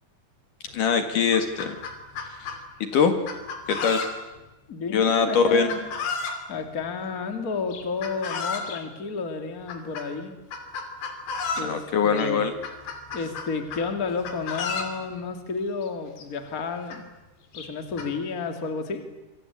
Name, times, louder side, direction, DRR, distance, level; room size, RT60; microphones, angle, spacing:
Chicken rooster, 0.7-0.8 1.1-2.6 3.3-4.4 5.7-6.4 7.7-8.8 9.7-10.1 10.5-11.7 12.1-12.3 12.6-13.9 14.2-15.0 15.9-16.0 16.2-16.3 16.9-17.0 17.6-18.1, left 5 dB, 85° left, 4.9 m, -32 dB
voice 1, 0.7-1.8 2.4-2.5 2.8-3.2 3.7-4.0 4.9-5.7 11.6-12.5, left 6 dB, 60° left, 7 dB, 3.2 m, -22 dB
voice 2, 4.7-5.8 6.5-10.3 11.6-12.4 13.1-17.0 17.5-19.0, left 4 dB, 25° left, 6 dB, 2.5 m, -31 dB
26.5 x 24.5 x 8.6 m, 1.0 s
omnidirectional pair, 4.6 m